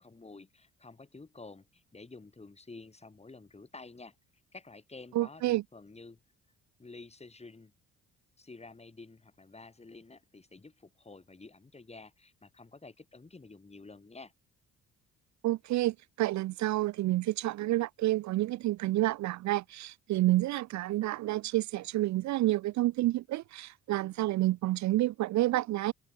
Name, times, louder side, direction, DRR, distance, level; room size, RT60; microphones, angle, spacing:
voice 1, 0.0-4.1 4.5-6.2 6.8-7.7 8.4-14.3, left 3 dB, 20° left, 3.3 m, -50 dB
voice 2, 5.1-5.6 15.4-25.9, right 16 dB, 70° right, 0.5 m, -29 dB
open air
cardioid pair, 90°, 30 cm